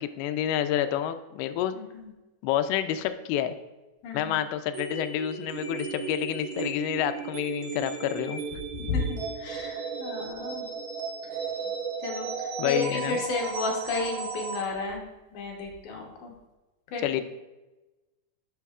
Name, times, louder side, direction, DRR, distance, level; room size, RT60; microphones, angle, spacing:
voice 1, 0.0-1.8 2.4-3.6 4.1-8.4 12.6-13.2 17.0-17.2, left 11 dB, 85° left, 10 dB, 2.4 m, -28 dB
voice 2, 1.7-2.1 4.0-4.4 8.8-10.7 12.0-16.3 16.9-17.0, left 3 dB, 65° left, 0 dB, 2.1 m, -32 dB
sound 1, 4.7-14.7, right 5 dB, 75° right, 2.8 m, -35 dB
11.0 x 6.4 x 2.4 m, 1.1 s
omnidirectional pair, 4.6 m